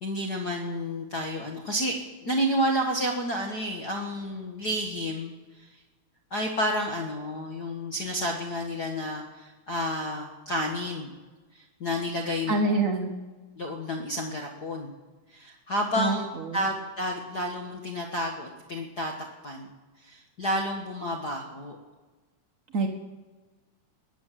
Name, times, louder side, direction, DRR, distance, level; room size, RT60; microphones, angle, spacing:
voice 1, 0.0-5.8 6.3-11.1 11.5-12.7 13.6-15.0 15.3-16.3 16.5-19.1 19.4-19.7 20.0-21.8, equal, 40° left, 1 dB, 1.6 m, -30 dB
voice 2, 12.5-13.2 16.0-16.6 22.7-22.9, right 2 dB, 80° right, 4 dB, 0.7 m, -26 dB
20.5 x 9.5 x 7.4 m, 1.3 s
omnidirectional pair, 3.4 m